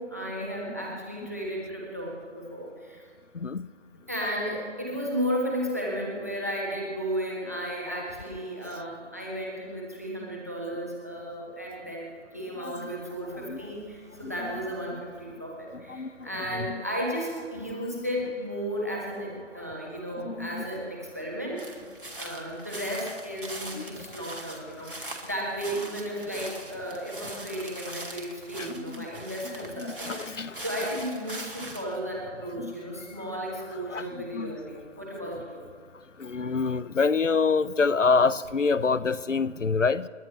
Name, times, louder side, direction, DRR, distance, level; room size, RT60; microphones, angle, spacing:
voice 1, 0.0-3.0 4.1-21.7 22.2-35.6, equal, 15° right, -3 dB, 1.5 m, -34 dB
voice 2, 3.3-3.7 12.6-12.9 13.3-13.6 14.2-14.5 14.9-15.0 15.7-16.8 20.2-20.6 23.7-24.1 24.8-24.9 28.6-30.6 32.6-32.8 33.9-34.6 36.2-40.1, left 4 dB, 90° left, 18 dB, 0.7 m, -28 dB
Walking On Dry Leaves, 21.6-32.0, right 1 dB, 45° right, 2.1 m, -41 dB
29.0 x 10.5 x 3.2 m, 2.1 s
figure-of-eight pair, 170°, 36 cm